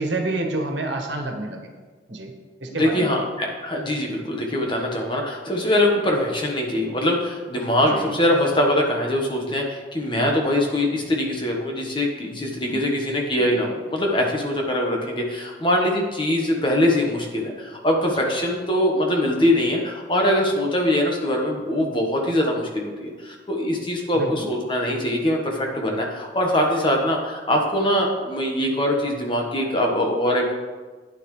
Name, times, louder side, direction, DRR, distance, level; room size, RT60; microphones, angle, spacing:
voice 1, 0.0-1.7 2.1-2.3 2.6-3.2 7.9-8.2 12.7-12.9 13.4-13.5 18.2-18.3 24.1-24.5, right 2 dB, 85° right, 2 dB, 1.5 m, -28 dB
voice 2, 2.7-30.5, left 1 dB, 25° left, 0 dB, 1.3 m, -22 dB
11.0 x 9.1 x 3.3 m, 1.4 s
head